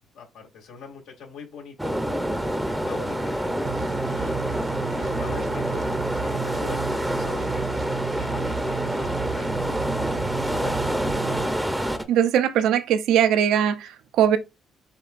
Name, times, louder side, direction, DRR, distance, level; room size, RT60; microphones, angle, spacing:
voice 1, 0.1-1.9 2.7-3.7 4.1-4.5 4.8-7.7 8.2-9.5 10.4-10.9, left 5 dB, 85° left, 2.9 m, -42 dB
sound 1, 1.8-12.0, equal, 5° right, 0.7 m, -27 dB
sound 2, 3.6-11.4, right 9 dB, 45° right, 0.7 m, -33 dB
voice 2, 12.1-14.4, right 9 dB, 80° right, 0.6 m, -20 dB
7.2 x 2.8 x 2.5 m
cardioid pair, 115°, 0 cm